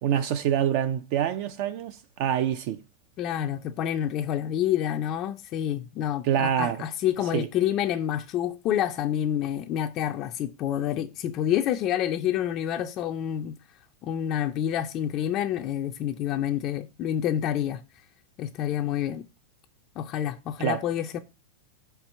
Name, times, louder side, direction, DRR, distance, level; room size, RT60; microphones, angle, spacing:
voice 1, 0.0-2.8 6.2-6.8 7.3-7.5 20.6-20.8, right 10 dB, 45° right, 0.4 m, -26 dB
voice 2, 3.2-13.6 14.0-17.8 18.4-19.3 20.0-21.2, left 10 dB, 30° left, 0.4 m, -28 dB
4.9 x 4.5 x 5.4 m
supercardioid pair, 165°, 0 cm